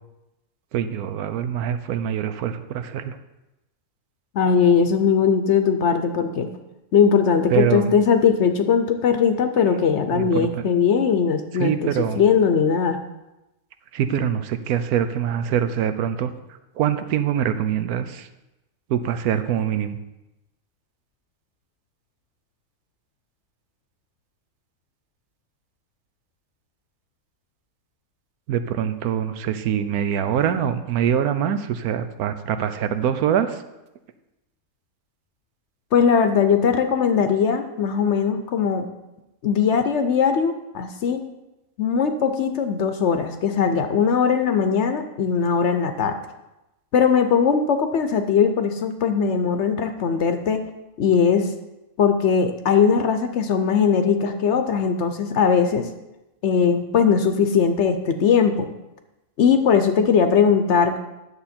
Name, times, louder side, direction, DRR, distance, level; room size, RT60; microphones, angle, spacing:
voice 1, 0.7-3.2 7.5-7.9 10.1-10.6 11.6-12.2 13.9-16.3 16.8-18.3 18.9-20.0 28.5-33.6, right 9 dB, 90° right, 10 dB, 1.2 m, -24 dB
voice 2, 4.3-6.5 6.9-13.0 35.9-38.8 39.4-41.2 41.8-46.1 46.9-50.6 51.0-51.5 52.0-55.8 56.4-58.7 59.4-61.0, left 6 dB, 60° left, 8 dB, 0.8 m, -20 dB
9.6 x 7.0 x 4.3 m, 0.97 s
omnidirectional pair, 1.5 m